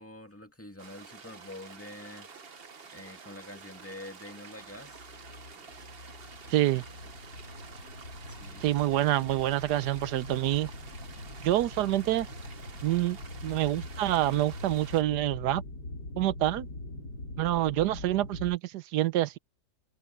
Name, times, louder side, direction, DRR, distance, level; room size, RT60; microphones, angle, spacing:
voice 1, 0.0-2.3 2.9-5.1 8.3-9.0, left 1 dB, 10° left, 2.1 m, -46 dB
sound 1, 0.8-15.0, right 5 dB, 40° right, 1.2 m, -49 dB
sound 2, 4.7-18.6, left 2 dB, 90° left, 3.9 m, -43 dB
voice 2, 6.5-6.8 8.6-10.7 11.4-12.3 12.8-13.2 13.4-15.6 16.2-16.7 17.4-19.4, right 14 dB, 80° right, 1.2 m, -27 dB
omnidirectional pair, 1.8 m